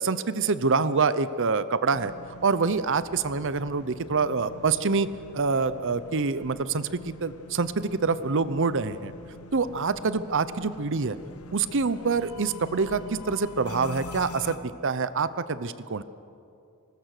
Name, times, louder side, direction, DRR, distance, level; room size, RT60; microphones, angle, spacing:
voice 1, 0.0-2.1 2.4-5.1 5.3-9.1 9.5-11.2 11.5-16.0, right 4 dB, 60° right, 14 dB, 0.7 m, -26 dB
sound 1, 1.9-14.6, left 2 dB, 85° left, 1.2 m, -45 dB
24.0 x 20.0 x 6.6 m, 2.5 s
head